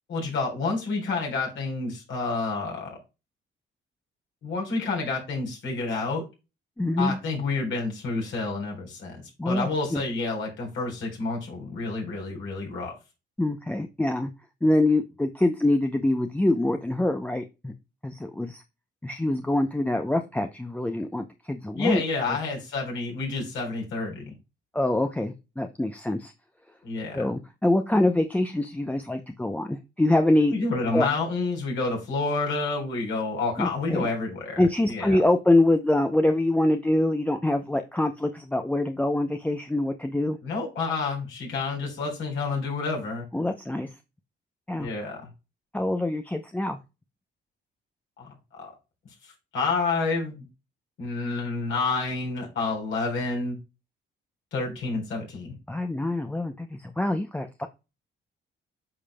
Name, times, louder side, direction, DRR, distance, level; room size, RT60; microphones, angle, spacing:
voice 1, 0.1-3.0 4.4-6.2 7.0-9.2 9.4-12.9 21.8-24.3 26.8-27.3 30.5-35.2 40.4-43.3 44.8-45.3 48.2-48.7 49.2-50.5 51.0-53.6 54.5-55.6, left 3 dB, 70° left, 4.0 m, -29 dB
voice 2, 6.8-7.2 9.4-10.0 13.4-14.3 14.6-17.7 18.0-18.6 19.0-22.0 24.7-26.3 27.1-30.5 30.9-31.1 33.6-34.1 34.6-40.4 43.3-43.9 44.7-44.9 45.7-46.8 55.7-57.7, left 1 dB, 5° left, 0.6 m, -25 dB
8.6 x 5.1 x 2.2 m
cardioid pair, 90°, 20 cm